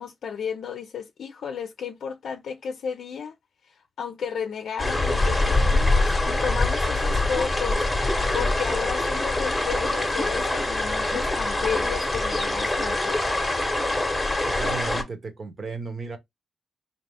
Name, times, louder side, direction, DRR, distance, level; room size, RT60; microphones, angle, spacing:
voice 1, 0.0-3.3 3.7-13.3, left 7 dB, 70° left, 0.5 m, -33 dB
sound 1, 4.8-15.0, left 2 dB, 10° left, 0.9 m, -24 dB
voice 2, 14.4-16.2, right 5 dB, 45° right, 1.1 m, -34 dB
4.0 x 2.8 x 3.4 m
wide cardioid pair, 120°, 0 cm